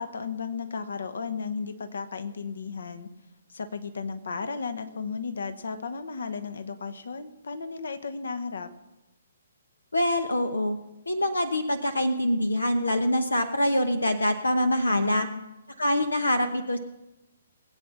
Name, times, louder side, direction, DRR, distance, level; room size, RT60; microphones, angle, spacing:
voice 1, 0.0-3.1 3.5-8.7 14.9-15.5, left 5 dB, 65° left, 10 dB, 1.2 m, -34 dB
voice 2, 9.9-10.8 11.1-15.3 15.8-16.8, left 1 dB, 80° left, 9 dB, 1.0 m, -25 dB
21.0 x 8.3 x 6.1 m, 1.0 s
figure-of-eight pair, 130°, 0 cm